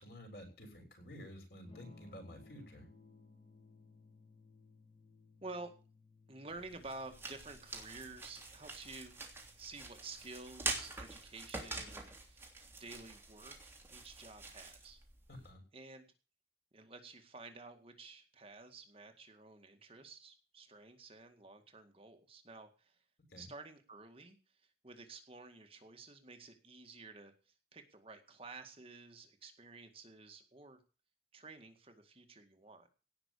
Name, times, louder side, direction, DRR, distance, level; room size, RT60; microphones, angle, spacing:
voice 1, 0.0-2.9 15.3-15.6 23.3-23.5, equal, 60° left, 3 dB, 6.6 m, -51 dB
Electric guitar / Strum, 1.6-11.4, left 3 dB, 30° left, 1.9 m, -62 dB
voice 2, 5.4-5.7 6.3-15.0 15.7-16.1 16.7-23.0 23.4-24.4 24.8-30.8 31.3-32.9, right 3 dB, 35° right, 5 dB, 2.0 m, -51 dB
sound 1, 6.5-15.5, right 3 dB, 15° right, 3.0 m, -46 dB
17.5 x 6.2 x 8.4 m, 0.36 s
head